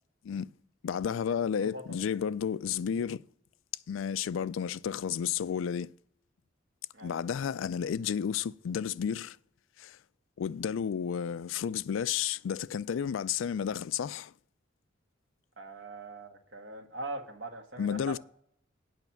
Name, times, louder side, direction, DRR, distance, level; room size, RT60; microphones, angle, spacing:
voice 1, 0.8-3.2 3.9-5.9 7.0-9.4 9.8-10.0 10.4-14.3 17.8-18.2, left 8 dB, 75° left, 0.3 m, -32 dB
voice 2, 1.6-2.0 6.9-7.2 15.6-18.2, right 2 dB, 60° right, 1.5 m, -42 dB
9.3 x 5.8 x 5.8 m
head